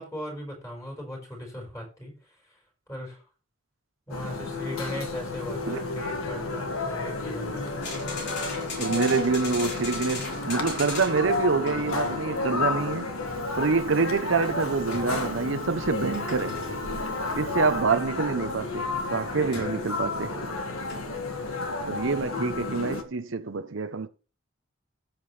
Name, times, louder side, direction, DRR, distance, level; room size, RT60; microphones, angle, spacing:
voice 1, 0.0-2.6 2.9-3.2 4.1-7.6, equal, 15° left, 4.7 m, -38 dB
sound 1, 4.1-23.0, left 3 dB, 85° left, 1.7 m, -31 dB
sound 2, 7.8-11.3 11.7-12.3 14.9-15.2 16.0-16.9 19.5-19.8 20.8-21.0, left 2 dB, 55° left, 4.3 m, -38 dB
voice 2, 8.8-13.1 13.6-16.7 17.3-20.3 21.9-24.1, right 4 dB, 65° right, 0.6 m, -26 dB
Fire, 13.2-17.8, right 3 dB, 85° right, 1.9 m, -48 dB
13.5 x 7.4 x 3.2 m
head